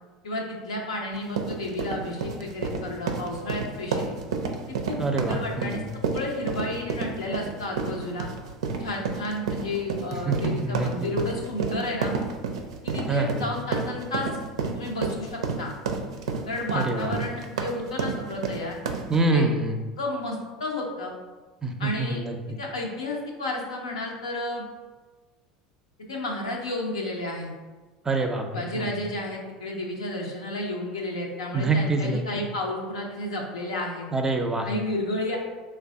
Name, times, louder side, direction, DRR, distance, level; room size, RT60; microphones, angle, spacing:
voice 1, 0.2-4.2 4.8-8.3 8.8-12.1 12.8-14.3 14.7-15.7 16.5-18.8 19.3-19.5 20.0-21.1 21.8-22.2 22.6-24.7 26.1-27.5 28.5-34.1 34.6-35.4, left 1 dB, 85° left, -1 dB, 0.6 m, -32 dB
sound 1, 1.1-19.2, right 4 dB, 80° right, 0.4 m, -31 dB
voice 2, 5.0-5.8 10.1-11.1 13.1-13.4 16.7-17.1 19.1-19.7 21.6-22.6 28.0-28.9 31.5-32.2 34.1-34.7, right 3 dB, 15° right, 5 dB, 0.5 m, -26 dB
3.2 x 2.3 x 3.6 m, 1.3 s
hypercardioid pair, 80°, 3 cm